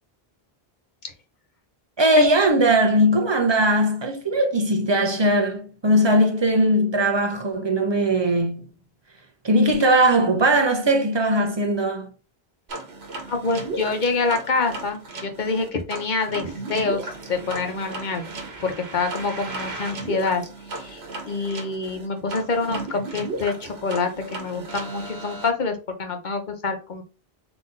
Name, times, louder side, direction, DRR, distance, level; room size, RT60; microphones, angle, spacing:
voice 1, 2.0-8.7 9.4-12.1, right 1 dB, 30° right, 0.7 m, -19 dB
sound 1, 12.7-25.5, right 2 dB, 85° right, 1.2 m, -35 dB
voice 2, 13.3-18.2 18.6-20.4 20.7-27.0, left 4 dB, 50° left, 1.0 m, -26 dB
4.0 x 2.9 x 3.8 m
omnidirectional pair, 1.1 m